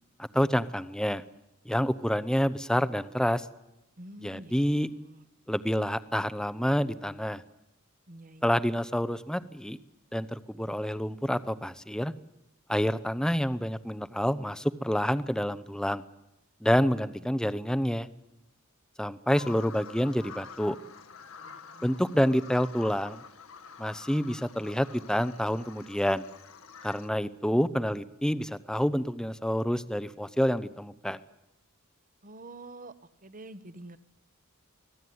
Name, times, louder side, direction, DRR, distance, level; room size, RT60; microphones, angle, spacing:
voice 1, 0.2-1.2 1.6-3.5 4.2-4.9 5.5-7.4 8.4-9.8 10.1-12.1 12.7-16.0 16.6-18.1 19.0-20.8 21.8-23.2 23.8-26.2 26.8-31.2, equal, 5° left, 15 dB, 0.8 m, -28 dB
voice 2, 4.0-5.2 8.1-8.5 17.3-17.4 21.4-21.9 32.2-33.0 33.2-34.0, right 1 dB, 40° right, 14 dB, 1.2 m, -47 dB
Bird vocalization bird call bird song, 19.3-27.1, left 6 dB, 70° left, 1.5 m, -48 dB
24.5 x 17.5 x 9.5 m, 0.92 s
head